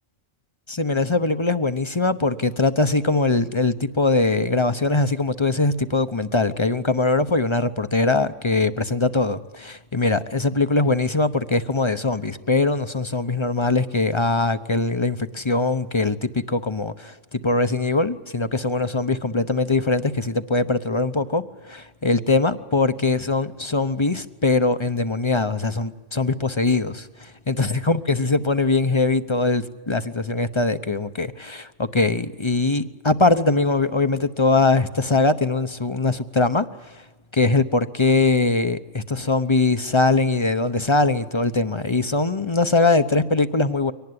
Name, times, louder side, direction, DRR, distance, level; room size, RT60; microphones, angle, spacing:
voice 1, 0.7-27.1 27.5-36.7 37.3-43.9, left 3 dB, 25° left, 12 dB, 0.9 m, -21 dB
24.0 x 18.5 x 9.7 m, 1.2 s
omnidirectional pair, 1.2 m